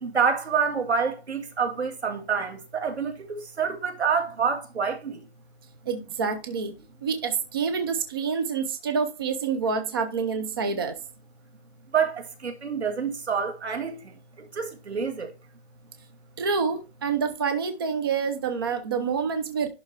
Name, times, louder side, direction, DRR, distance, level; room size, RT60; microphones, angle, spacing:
voice 1, 0.0-5.3 11.9-15.3, right 6 dB, 85° right, 2.2 m, -27 dB
voice 2, 5.9-6.7 7.0-11.0 16.4-19.7, right 5 dB, 20° right, 0.5 m, -27 dB
11.0 x 3.8 x 3.3 m
hypercardioid pair, 165°, 32 cm